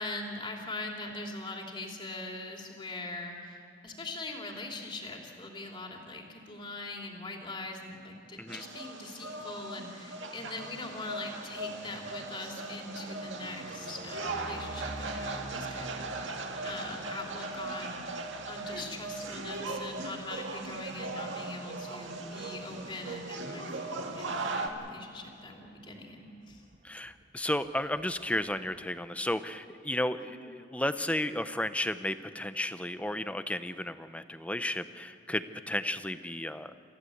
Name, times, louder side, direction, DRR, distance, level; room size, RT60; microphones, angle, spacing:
voice 1, 0.0-26.6 30.2-30.4, left 2 dB, 25° left, 1 dB, 3.1 m, -42 dB
sound 1, 8.5-24.7, right 2 dB, 70° right, 1.9 m, -39 dB
sound 2, 10.3-24.2 24.7-25.1 25.4-25.5 25.8-25.9 26.0-28.9, right 1 dB, 40° right, 1.1 m, -49 dB
voice 2, 26.8-36.7, left 1 dB, 5° left, 11 dB, 0.7 m, -33 dB
28.5 x 15.0 x 7.9 m, 2.7 s
head